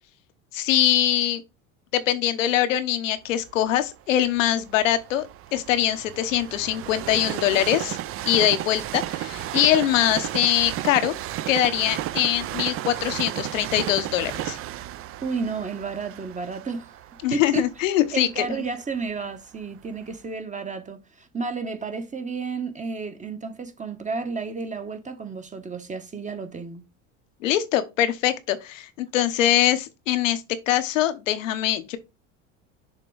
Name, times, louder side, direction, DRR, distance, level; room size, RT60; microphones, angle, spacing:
voice 1, 0.5-1.4 1.9-5.3 5.5-8.0 8.3-11.2 11.5-14.6 17.2-18.5 27.4-32.0, left 12 dB, 90° left, 1.0 m, -23 dB
Train, 3.5-19.4 20.0-20.1, right 13 dB, 40° right, 0.4 m, -34 dB
voice 2, 15.2-16.9 17.3-17.7 18.1-26.8, right 4 dB, 20° right, 1.0 m, -32 dB
6.7 x 3.0 x 4.6 m
supercardioid pair, 95°, 38 cm